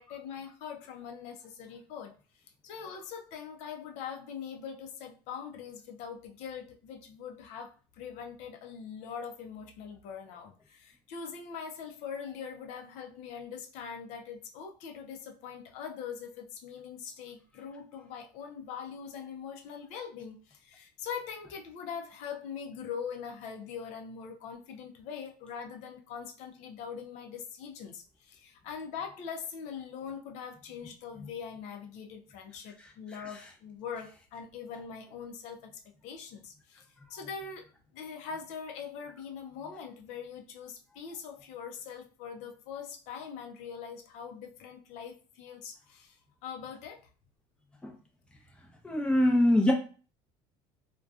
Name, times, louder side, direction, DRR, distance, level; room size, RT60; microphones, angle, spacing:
voice 1, 0.0-36.8 37.1-46.2 46.4-47.0, left 7 dB, 70° left, 3 dB, 0.5 m, -42 dB
voice 2, 48.8-49.7, left 1 dB, 10° left, 1 dB, 0.6 m, -24 dB
2.5 x 2.2 x 2.4 m, 0.37 s
supercardioid pair, 115°, 12 cm